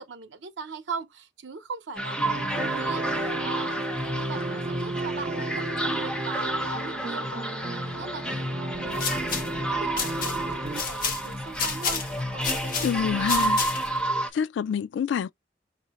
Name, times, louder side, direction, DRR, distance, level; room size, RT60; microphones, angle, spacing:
voice 1, 0.0-3.8 4.0-13.4, right 5 dB, 85° right, 0.8 m, -40 dB
sound 1, 2.0-14.3, right 1 dB, 5° left, 0.7 m, -30 dB
sound 2, 2.2-10.8, right 2 dB, 30° right, 0.4 m, -34 dB
sound 3, 8.7-14.0, left 6 dB, 50° left, 1.0 m, -32 dB
voice 2, 12.8-13.6 14.3-15.3, left 7 dB, 80° left, 0.3 m, -27 dB
5.5 x 2.7 x 2.9 m
head